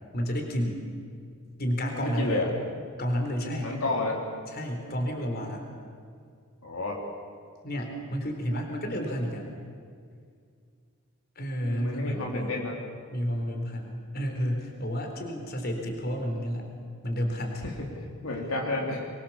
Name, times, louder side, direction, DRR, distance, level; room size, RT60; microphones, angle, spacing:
voice 1, 0.1-0.8 1.6-2.4 3.0-3.7 4.5-5.6 7.6-9.5 11.4-12.5 13.1-16.7 17.0-17.7, equal, 50° left, 2 dB, 4.0 m, -31 dB
voice 2, 2.0-2.5 3.6-4.2 6.6-7.0 11.7-12.8 17.6-17.9 18.1-19.1, left 2 dB, 75° left, -1 dB, 3.4 m, -30 dB
24.5 x 22.5 x 7.3 m, 2.2 s
head